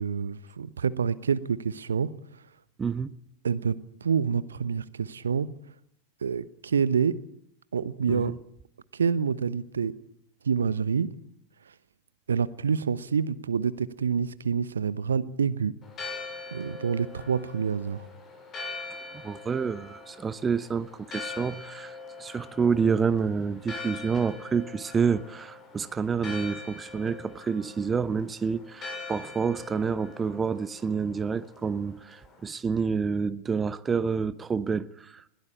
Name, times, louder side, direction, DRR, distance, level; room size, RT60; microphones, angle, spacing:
voice 1, 0.0-2.1 3.4-5.5 6.2-7.2 7.7-8.3 8.9-9.9 10.4-11.1 12.3-15.8 16.5-18.1, right 6 dB, 70° right, 1.0 m, -27 dB
voice 2, 2.8-3.1 8.1-8.4 19.1-35.2, right 5 dB, 15° right, 0.9 m, -28 dB
Church bell, 15.8-32.5, left 4 dB, 25° left, 7.6 m, -43 dB
21.0 x 17.5 x 8.6 m
figure-of-eight pair, 90°, 0 cm